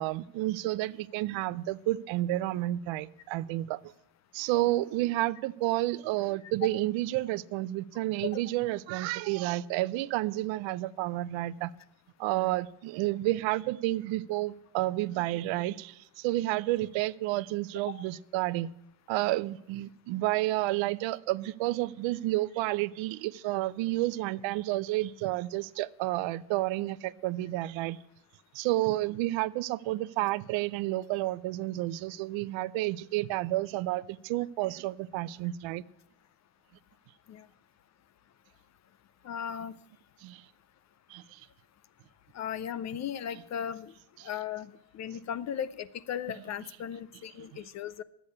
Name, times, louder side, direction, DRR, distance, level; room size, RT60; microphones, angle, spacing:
voice 1, 0.0-3.8 4.3-11.7 12.2-18.7 19.1-28.0 28.5-35.8 40.2-40.4 41.1-41.5 44.2-44.3, right 17 dB, 70° right, 0.6 m, -30 dB
voice 2, 39.2-39.8 42.3-43.9 44.2-48.0, left 9 dB, 40° left, 0.4 m, -37 dB
11.5 x 8.2 x 8.4 m
cardioid pair, 150°, 47 cm